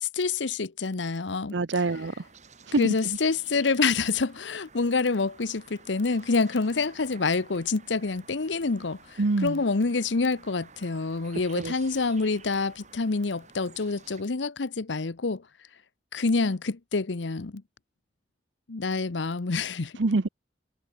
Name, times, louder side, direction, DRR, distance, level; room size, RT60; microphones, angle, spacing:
voice 1, 0.0-1.5 2.8-15.4 16.1-17.6 18.7-19.9, left 4 dB, 80° left, 0.9 m, -27 dB
voice 2, 1.5-2.3 2.7-3.2 9.2-9.6 11.6-11.7 20.0-20.3, right 3 dB, 90° right, 0.8 m, -26 dB
sound 1, 1.8-14.2, right 4 dB, 40° right, 6.8 m, -52 dB
head